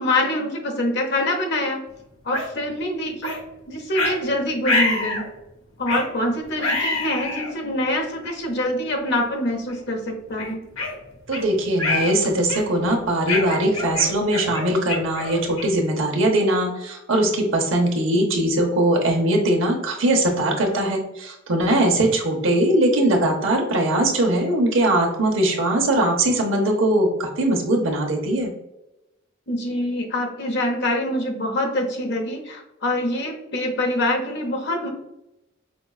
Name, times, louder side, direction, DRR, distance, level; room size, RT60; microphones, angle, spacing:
voice 1, 0.0-1.8 2.2-3.4 3.7-5.2 5.8-10.6 29.5-34.9, left 1 dB, 60° left, 2 dB, 0.9 m, -25 dB
sound 1, 2.3-2.5 3.2-3.4 3.9-4.2 4.6-5.3 5.9-6.1 6.6-7.5 8.2-8.3 9.0-9.3 9.7-9.8 10.4-11.4 11.8-12.2 12.5-12.8 13.3-15.8, left 2 dB, 85° left, 1.1 m, -26 dB
voice 2, 11.3-28.5, right 1 dB, 70° right, 2 dB, 0.9 m, -21 dB
5.2 x 2.3 x 2.3 m, 0.90 s
head